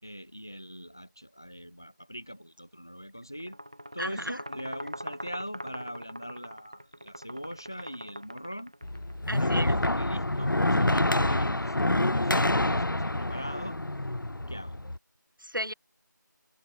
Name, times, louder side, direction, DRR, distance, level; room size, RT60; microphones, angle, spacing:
voice 1, 0.0-3.6 3.9-8.7 9.3-13.8 14.5-14.8, equal, 10° left, 3.2 m, -41 dB
sound 1, 3.4-9.1, equal, 20° right, 4.7 m, -42 dB
voice 2, 4.0-4.4 9.3-9.8 15.4-15.7, equal, 90° right, 7.9 m, -34 dB
sound 2, 8.8-15.0, left 1 dB, 80° left, 0.8 m, -27 dB
figure-of-eight pair, 180°, 11 cm